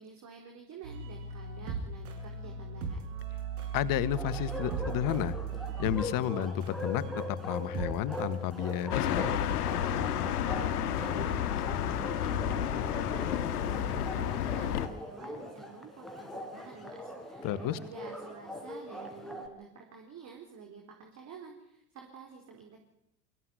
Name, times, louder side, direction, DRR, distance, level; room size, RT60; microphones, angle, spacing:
voice 1, 0.0-3.0 10.4-22.8, right 6 dB, 35° right, 2 dB, 4.4 m, -49 dB
sound 1, 0.8-8.9, right 4 dB, 60° right, 6.8 m, -38 dB
voice 2, 3.7-5.4 5.8-9.3 17.4-17.8, left 12 dB, 40° left, 15 dB, 1.7 m, -32 dB
Bark, 4.1-19.5, left 1 dB, ahead, 4.7 m, -41 dB
sound 2, 8.9-14.9, left 10 dB, 65° left, 1.9 m, -31 dB
24.0 x 15.5 x 9.8 m, 0.80 s
figure-of-eight pair, 75°, 49 cm